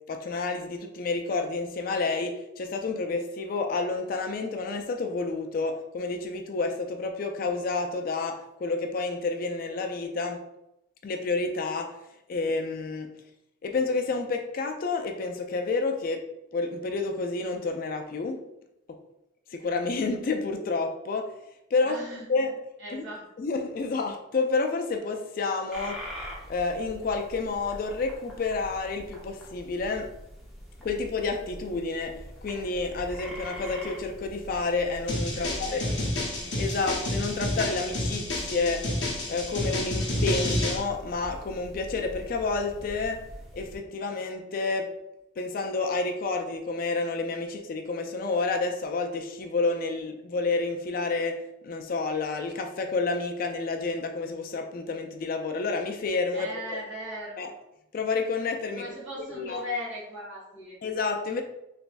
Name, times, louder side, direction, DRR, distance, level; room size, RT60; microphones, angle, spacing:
voice 1, 0.1-10.4 11.0-11.9 12.3-13.1 13.6-16.3 16.5-18.4 19.5-21.3 21.7-22.0 22.3-22.5 22.9-23.0 23.4-26.0 26.5-30.1 30.8-35.8 36.6-38.8 39.3-43.2 43.5-44.9 45.4-56.8 57.4-57.5 57.9-58.8 59.3-59.6 60.8-61.4, left 3 dB, 45° left, 5 dB, 0.3 m, -29 dB
voice 2, 21.8-22.3 22.8-23.2 35.3-36.5 56.3-57.5 58.8-60.8, left 1 dB, 60° right, -6 dB, 1.5 m, -38 dB
sound 1, 25.7-43.8, equal, ahead, 0.7 m, -44 dB
sound 2, 35.1-40.8, left 1 dB, 60° left, 0.8 m, -29 dB
3.3 x 3.1 x 2.5 m, 0.86 s
head